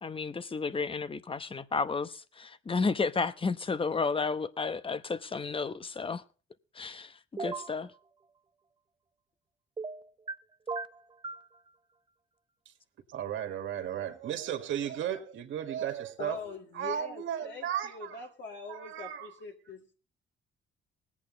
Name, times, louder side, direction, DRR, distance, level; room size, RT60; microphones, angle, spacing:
voice 1, 0.0-6.2 6.7-7.9, left 4 dB, 25° left, 0.9 m, -32 dB
sound 1, 7.4-7.7 9.8-10.4 10.7-11.5, right 4 dB, 25° right, 0.5 m, -36 dB
voice 2, 13.1-16.4 16.7-18.2 18.7-19.3, right 10 dB, 75° right, 1.7 m, -35 dB
voice 3, 16.2-19.9, left 4 dB, 65° left, 2.0 m, -43 dB
20.0 x 8.5 x 3.8 m
cardioid pair, 90°, 20 cm